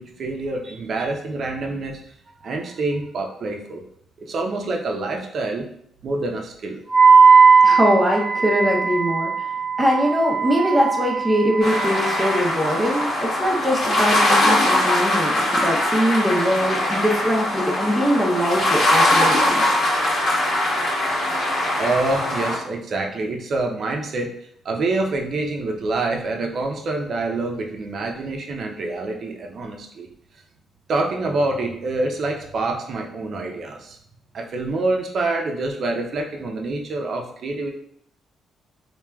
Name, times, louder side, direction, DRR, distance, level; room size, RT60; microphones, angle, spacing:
voice 1, 0.0-2.0 2.4-3.8 4.2-5.7 6.0-6.8 21.8-24.3 24.6-30.1 30.9-34.0 34.3-37.7, right 2 dB, 55° right, 1 dB, 0.5 m, -26 dB
Wind instrument woodwind instrument, 6.9-13.0, right 5 dB, 20° left, 0.9 m, -18 dB
voice 2, 7.6-9.5 9.8-19.7, equal, 10° right, -2 dB, 0.6 m, -22 dB
sound 1, 11.6-22.6, left 1 dB, 65° left, 1.0 m, -21 dB
3.2 x 2.3 x 2.2 m, 0.70 s
cardioid pair, 90°, 0 cm